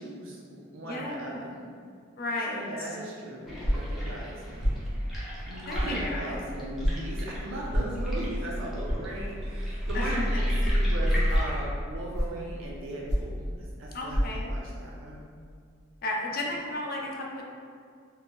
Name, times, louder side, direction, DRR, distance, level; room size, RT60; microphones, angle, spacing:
voice 1, 0.0-1.6 2.5-4.7 5.4-13.5 13.8-14.2 14.5-15.2, right 1 dB, 70° right, -3 dB, 0.5 m, -38 dB
voice 2, 0.8-1.5 2.2-2.9 5.7-6.4 9.9-10.2 13.9-14.5 16.0-17.4, left 2 dB, 45° left, -1 dB, 0.4 m, -34 dB
sound 1, 3.4-11.6, equal, ahead, 0.6 m, -32 dB
sound 2, 3.6-3.9 4.6-4.8 5.7-5.9 6.8-7.0 7.7-7.9 8.8-9.0 9.8-10.0 10.6-10.8 11.3-11.5 12.1-12.4 13.1-13.4 14.1-14.2, equal, 15° left, 1.3 m, -26 dB
4.0 x 2.2 x 3.4 m, 2.2 s
head